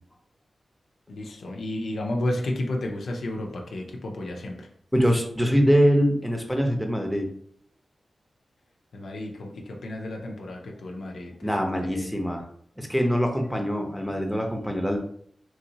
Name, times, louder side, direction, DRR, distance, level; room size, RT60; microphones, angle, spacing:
voice 1, 1.1-4.7 8.9-11.5 11.9-12.1, left 1 dB, 85° left, 1 dB, 0.5 m, -32 dB
voice 2, 4.9-7.3 11.4-12.4 12.8-15.0, equal, ahead, 2 dB, 0.8 m, -23 dB
3.0 x 2.8 x 2.8 m, 0.64 s
cardioid pair, 45°, 0 cm